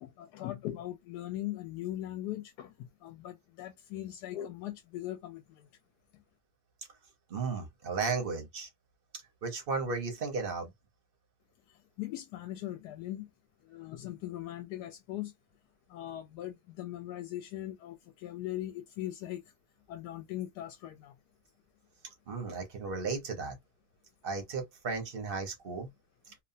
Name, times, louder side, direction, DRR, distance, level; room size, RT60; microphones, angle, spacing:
voice 1, 0.0-5.7 12.0-13.3 13.6-15.3 15.9-19.4 19.9-21.2, left 13 dB, 75° left, 1.1 m, -40 dB
voice 2, 7.3-8.7 9.4-10.7 22.3-23.6 24.2-25.9, right 4 dB, 45° right, 0.7 m, -34 dB
3.0 x 2.1 x 2.6 m
omnidirectional pair, 1.8 m